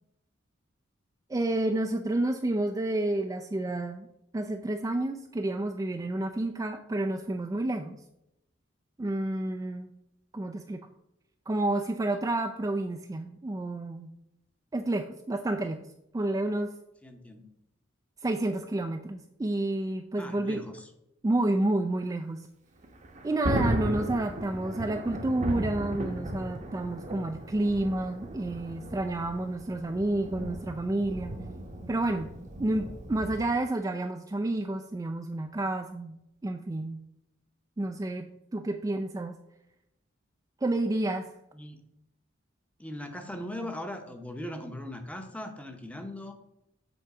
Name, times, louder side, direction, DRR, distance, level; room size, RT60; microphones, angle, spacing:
voice 1, 1.3-4.1 4.3-8.0 9.0-9.9 10.3-10.8 11.5-14.1 14.7-15.8 16.1-16.7 18.2-20.6 21.2-22.4 23.2-31.3 31.9-32.3 32.6-36.2 36.4-37.0 37.8-39.4 40.6-41.3, right 2 dB, 20° right, 5 dB, 0.3 m, -30 dB
voice 2, 17.0-17.5 20.2-20.9 41.5-41.8 42.8-46.3, left 1 dB, 5° left, 6 dB, 0.8 m, -39 dB
Thunder, 22.8-33.6, right 1 dB, 40° right, 0.8 m, -35 dB
8.0 x 3.8 x 4.8 m, 0.84 s
head